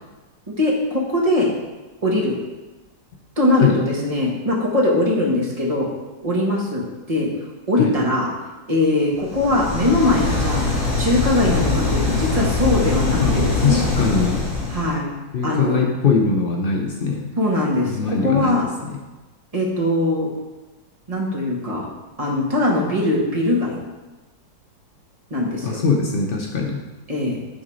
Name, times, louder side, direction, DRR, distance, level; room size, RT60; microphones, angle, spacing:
voice 1, 0.5-1.5 2.0-2.3 3.4-5.9 6.2-7.3 7.7-8.3 8.7-10.6 11.0-13.9 14.7-15.1 15.4-15.8 17.4-18.7 19.5-20.3 21.1-21.9 22.2-23.8 25.3-25.8 27.1-27.4, left 1 dB, 20° right, -3 dB, 1.5 m, -21 dB
sound 1, 9.2-14.9, left 3 dB, 60° left, 3.5 m, -22 dB
voice 2, 13.2-14.5 15.3-17.4 17.8-19.0 25.6-26.8, left 5 dB, 80° left, 0 dB, 0.5 m, -21 dB
10.5 x 4.0 x 5.0 m, 1.2 s
omnidirectional pair, 2.0 m